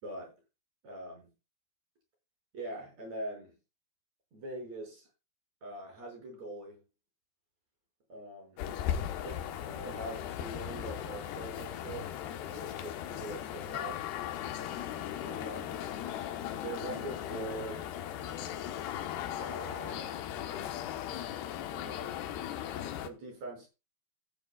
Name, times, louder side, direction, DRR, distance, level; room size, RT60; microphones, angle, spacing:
voice 1, 0.0-0.3 0.8-1.3 2.5-3.5 4.3-5.1 5.6-6.8 8.1-8.6 9.2-9.3 9.7-14.0 15.2-15.8 16.6-17.9 19.3-20.1 21.7-22.5 23.0-23.7, right 2 dB, 45° right, 6.9 m, -43 dB
sound 1, 8.6-23.1, left 10 dB, 85° left, 3.2 m, -38 dB
16.0 x 10.0 x 2.3 m
omnidirectional pair, 4.6 m